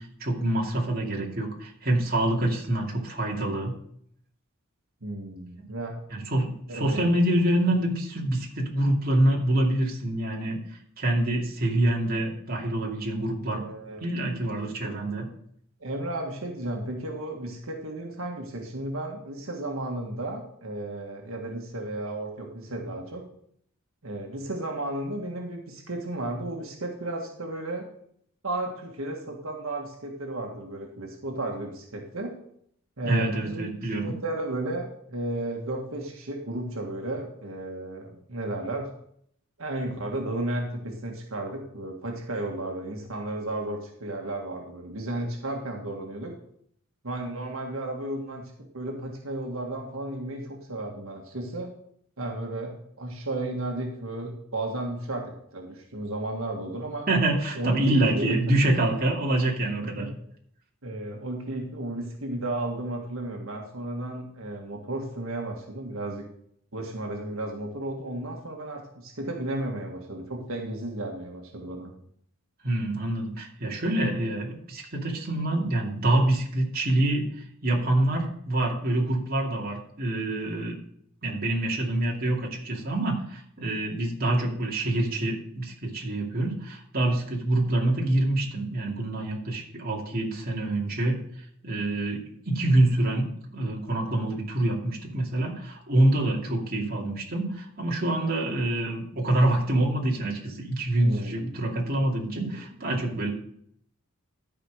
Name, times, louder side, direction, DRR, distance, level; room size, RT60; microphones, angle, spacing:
voice 1, 0.0-3.7 5.6-5.7 6.1-13.6 14.0-15.3 33.0-34.2 57.1-60.1 72.6-80.8 81.2-91.2 91.6-93.3 93.5-103.3, right 1 dB, 45° right, -1 dB, 2.4 m, -26 dB
voice 2, 5.0-5.9 6.7-7.1 13.5-14.1 14.8-14.9 15.8-23.2 24.0-27.9 28.4-32.3 33.0-33.7 34.0-38.9 39.6-46.3 47.0-51.7 52.2-57.1 57.5-58.4 58.6-58.7 59.8-60.1 60.8-66.2 66.7-71.9 101.0-101.5 102.3-102.5 102.9-103.0, right 1 dB, 85° right, 1 dB, 1.7 m, -33 dB
12.5 x 5.2 x 6.4 m, 0.68 s
head